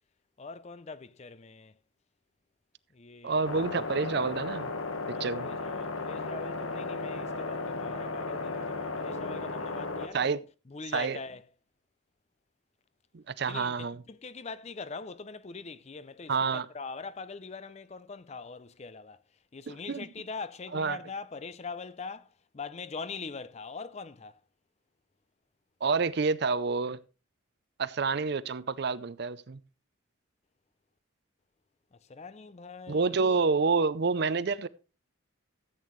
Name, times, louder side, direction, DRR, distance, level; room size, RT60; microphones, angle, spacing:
voice 1, 0.4-1.7 2.9-3.4 5.1-10.4 10.7-11.4 13.4-19.2 19.5-22.3 22.5-24.4 31.9-33.2, left 4 dB, 30° left, 0.4 m, -42 dB
voice 2, 3.2-4.7 5.2-5.5 10.1-10.4 10.9-11.2 13.1-14.0 16.3-16.7 19.7-20.1 20.7-21.0 25.8-27.0 27.8-29.6 32.9-34.7, right 4 dB, 50° right, 0.5 m, -28 dB
sound 1, 3.4-10.1, left 3 dB, 80° left, 1.2 m, -35 dB
14.0 x 8.4 x 3.1 m
head